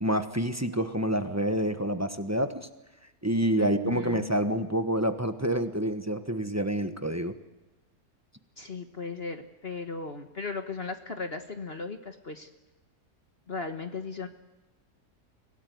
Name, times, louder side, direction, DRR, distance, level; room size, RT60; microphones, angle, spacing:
voice 1, 0.0-2.7 3.2-7.3, equal, 10° right, 8 dB, 1.1 m, -28 dB
voice 2, 3.6-4.3 8.6-12.5 13.5-14.3, left 4 dB, 40° left, 6 dB, 1.5 m, -36 dB
25.0 x 17.5 x 9.3 m, 1.1 s
omnidirectional pair, 1.7 m